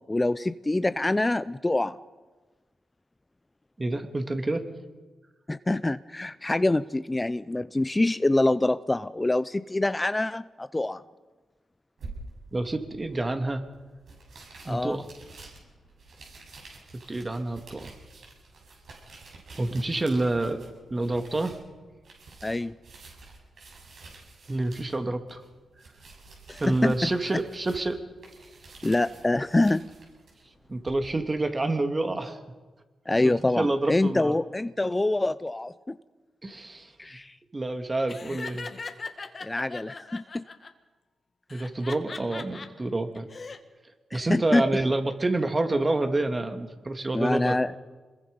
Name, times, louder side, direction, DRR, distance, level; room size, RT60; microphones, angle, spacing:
voice 1, 0.0-1.9 5.5-11.0 14.7-15.0 22.4-22.8 26.5-27.1 28.8-29.8 33.1-36.0 37.0-37.4 39.4-40.4 44.1-44.6 47.1-47.7, left 2 dB, 20° left, 15 dB, 0.6 m, -25 dB
voice 2, 3.8-4.6 12.5-13.6 14.6-15.1 17.1-17.9 19.6-20.6 20.9-21.6 24.5-25.4 26.6-28.0 30.7-32.4 33.2-34.4 36.4-36.9 37.5-38.7 41.5-43.3 44.1-47.6, right 2 dB, 30° right, 6 dB, 2.4 m, -28 dB
sound 1, 12.0-31.1, right 3 dB, 70° right, 7.0 m, -49 dB
Laughter, 38.1-40.7 41.5-42.7 43.1-43.6, left 4 dB, 50° left, 1.9 m, -39 dB
26.0 x 21.5 x 5.4 m, 1.3 s
supercardioid pair, 50°, 0 cm